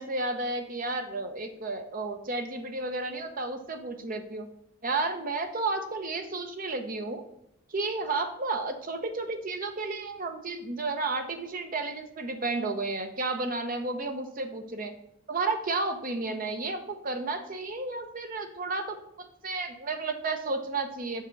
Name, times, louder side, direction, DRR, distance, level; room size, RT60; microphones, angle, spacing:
voice 1, 0.0-4.5 4.8-7.2 7.7-14.9 15.3-21.3, right 3 dB, 40° right, 7 dB, 0.8 m, -32 dB
7.5 x 5.1 x 4.6 m, 0.78 s
head